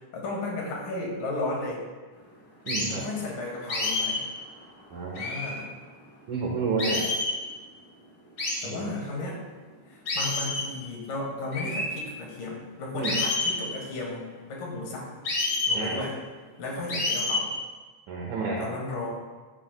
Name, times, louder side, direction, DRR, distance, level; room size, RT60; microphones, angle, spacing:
voice 1, 0.0-1.8 2.9-4.2 5.1-5.7 8.6-9.4 9.9-15.1 15.7-16.2 16.6-17.5 18.6-19.1, left 2 dB, 85° left, -2 dB, 3.6 m, -34 dB
sound 1, 2.7-2.9 3.7-4.3 5.2-5.6 6.8-7.4 8.4-8.7 10.1-10.7 11.5-11.9 13.0-13.6 15.3-15.8 16.9-17.5, left 2 dB, 35° left, 2.3 m, -28 dB
voice 2, 2.7-3.1 4.9-5.2 6.3-7.1 8.6-8.8 12.9-13.2 15.7-16.0 18.1-18.7, right 4 dB, 70° right, -4 dB, 2.6 m, -30 dB
15.5 x 8.3 x 2.2 m, 1.4 s
omnidirectional pair, 3.7 m